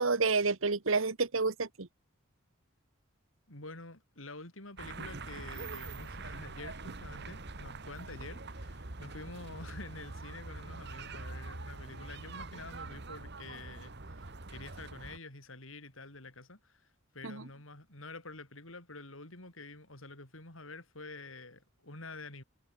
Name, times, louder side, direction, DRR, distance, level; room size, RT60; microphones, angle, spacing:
voice 1, 0.0-1.9 17.2-17.5, right 4 dB, 80° right, 1.4 m, -29 dB
voice 2, 3.5-16.8 17.1-22.4, left 2 dB, 85° left, 7.4 m, -48 dB
sound 1, 4.8-15.2, right 3 dB, 60° right, 2.1 m, -44 dB
head